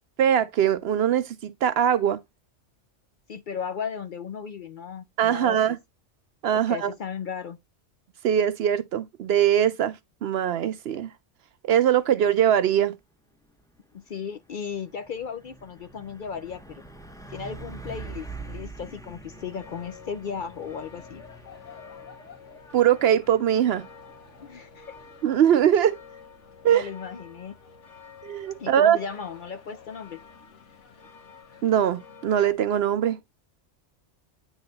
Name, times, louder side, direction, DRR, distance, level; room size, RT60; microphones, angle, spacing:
voice 1, 0.2-2.2 5.2-5.8 6.4-6.9 8.2-9.9 10.2-11.1 11.6-13.0 22.7-23.9 25.2-26.0 26.6-26.9 28.2-29.0 31.6-33.2, right 10 dB, 65° right, 0.7 m, -21 dB
voice 2, 3.3-5.8 6.7-7.6 13.9-16.8 17.3-21.2 24.4-24.9 26.6-27.6 28.6-30.2, left 6 dB, 55° left, 0.6 m, -36 dB
Truck, 13.4-27.7, right 3 dB, 5° left, 0.7 m, -46 dB
sound 1, 19.3-32.6, left 5 dB, 80° left, 1.5 m, -49 dB
9.1 x 3.3 x 3.8 m
omnidirectional pair, 1.2 m